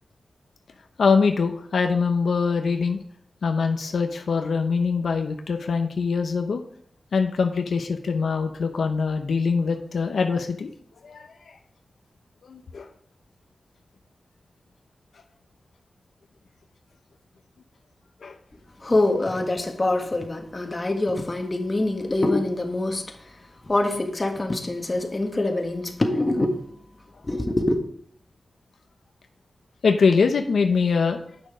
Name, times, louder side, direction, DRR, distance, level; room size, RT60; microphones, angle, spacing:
voice 1, 1.0-3.0 3.4-6.6 7.1-10.7 11.0-11.6 12.4-12.9 18.2-18.4 29.8-31.2, left 5 dB, 85° left, 0.8 m, -23 dB
voice 2, 18.8-26.8 27.2-27.8, left 2 dB, 30° left, 1.5 m, -25 dB
8.9 x 6.3 x 5.0 m
wide cardioid pair, 75°, 0 cm